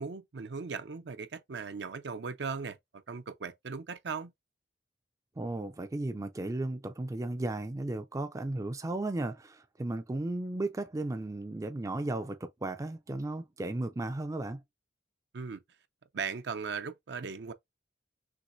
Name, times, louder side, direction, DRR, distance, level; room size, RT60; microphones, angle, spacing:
voice 1, 0.0-4.3 15.3-15.6 16.1-17.5, right 5 dB, 70° right, 0.6 m, -38 dB
voice 2, 5.4-14.6, right 2 dB, 20° right, 0.4 m, -35 dB
6.0 x 3.0 x 2.6 m
head